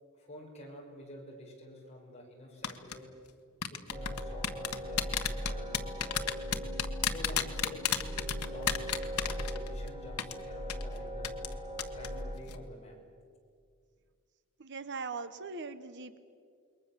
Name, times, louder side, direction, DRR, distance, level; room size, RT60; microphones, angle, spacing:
voice 1, 0.1-3.1 3.7-6.5 7.0-8.9 9.2-11.4 11.9-13.0, left 1 dB, 30° left, -1 dB, 5.6 m, -49 dB
sound 1, 2.6-2.9 3.6-9.9 10.2-10.3 10.7-10.8 11.2-11.5 11.8-12.1 12.4-12.5, left 9 dB, 85° left, 1.4 m, -31 dB
sound 2, 3.9-12.4, equal, 25° right, 4.0 m, -39 dB
voice 2, 14.6-16.2, right 4 dB, 55° right, 12 dB, 1.0 m, -40 dB
28.0 x 22.0 x 7.3 m, 2.2 s
head